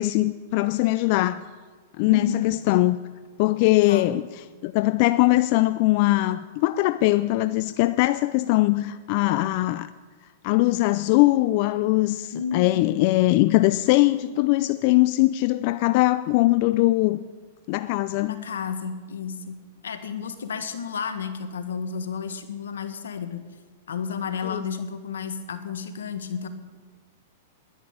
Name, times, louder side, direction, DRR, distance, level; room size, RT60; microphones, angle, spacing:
voice 1, 0.0-1.5 2.0-3.0 3.4-9.9 10.4-17.2 17.7-18.4 24.4-24.6, left 18 dB, 50° left, 0.4 m, -21 dB
voice 2, 2.1-2.6 3.8-4.1 12.3-13.1 18.3-19.6 19.8-23.5 23.9-26.5, left 6 dB, 85° left, 1.5 m, -32 dB
11.0 x 10.0 x 9.6 m
hypercardioid pair, 125°, 0 cm